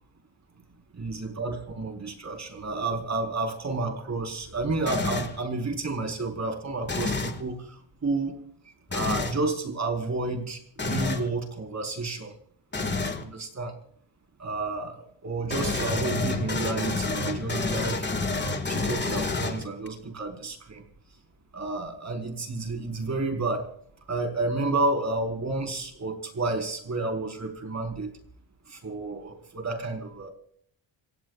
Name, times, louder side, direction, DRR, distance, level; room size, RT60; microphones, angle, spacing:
voice 1, 0.9-7.6 8.0-8.4 8.9-12.3 13.2-13.7 14.4-18.0 18.4-20.8 21.5-23.6 24.1-28.1 28.7-30.3, right 3 dB, 35° right, 3 dB, 4.6 m, -30 dB
sound 1, 4.9-5.4 6.9-7.4 8.9-9.4 10.8-11.3 12.7-13.2 15.5-19.9, left 3 dB, 25° left, 2.0 m, -29 dB
26.5 x 17.5 x 2.5 m, 0.62 s
cardioid pair, 115°, 45 cm